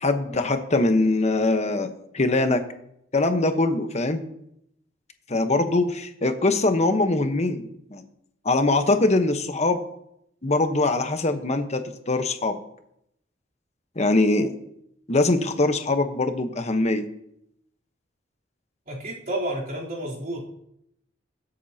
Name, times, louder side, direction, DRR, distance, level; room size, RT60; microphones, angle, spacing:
voice 1, 0.0-2.6 3.1-4.2 5.3-8.0 8.4-9.8 10.4-12.6 14.0-14.5 15.1-17.0, left 2 dB, 35° left, 7 dB, 1.1 m, -22 dB
voice 2, 18.9-20.4, right 1 dB, 50° right, -5 dB, 3.5 m, -30 dB
21.5 x 8.3 x 2.9 m, 0.76 s
head